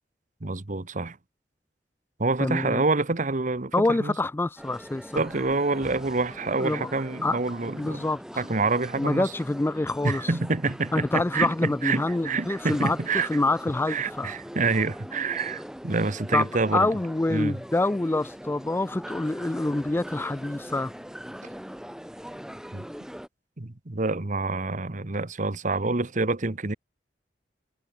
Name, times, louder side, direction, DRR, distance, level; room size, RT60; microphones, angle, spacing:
voice 1, 0.4-1.2 2.2-4.1 5.1-8.1 8.4-9.3 10.0-13.3 13.9-16.9 17.3-17.6 22.7-22.9 23.6-26.7, right 3 dB, 45° right, 1.2 m, -27 dB
voice 2, 2.4-2.8 3.7-5.2 6.6-6.9 7.2-7.4 7.8-8.4 9.0-10.3 10.9-14.3 16.3-16.5 16.7-20.9, left 2 dB, 15° left, 0.3 m, -26 dB
sound 1, 4.6-23.3, equal, 5° right, 2.5 m, -41 dB
head